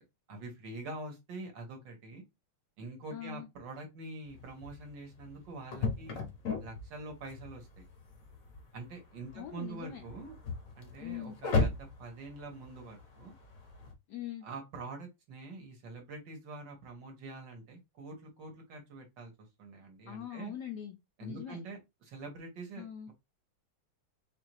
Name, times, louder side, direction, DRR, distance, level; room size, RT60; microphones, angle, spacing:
voice 1, 0.3-2.2 2.8-6.2 6.6-7.8 8.7-10.3 10.7-11.7 12.0-13.3 14.4-19.3 19.6-20.5 21.2-23.1, right 3 dB, 60° right, 1.6 m, -45 dB
voice 2, 3.1-3.5 9.3-10.0 11.0-11.4 14.1-14.5 20.1-21.6 22.8-23.1, left 10 dB, 75° left, 0.9 m, -42 dB
sound 1, 4.2-13.9, left 4 dB, 55° left, 1.0 m, -38 dB
4.6 x 2.5 x 3.0 m
omnidirectional pair, 2.3 m